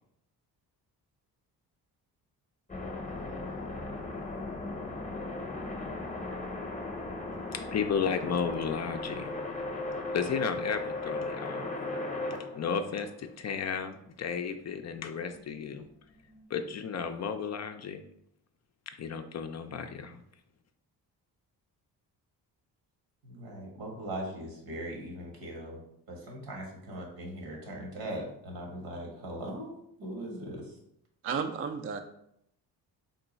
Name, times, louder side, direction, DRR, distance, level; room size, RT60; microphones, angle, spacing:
sound 1, 2.7-13.3 15.1-15.4 16.1-16.4, left 2 dB, 20° left, 0.8 m, -37 dB
voice 1, 7.5-9.3 10.1-11.7 12.6-15.9 16.5-18.0 19.0-20.2, left 6 dB, 40° left, 7 dB, 0.4 m, -33 dB
voice 2, 23.2-25.8 26.1-29.7 30.0-30.6, right 1 dB, 80° right, 0 dB, 1.4 m, -40 dB
voice 3, 31.2-32.0, right 6 dB, 35° right, 7 dB, 0.4 m, -32 dB
3.8 x 2.3 x 3.9 m, 0.75 s
supercardioid pair, 65°, 43 cm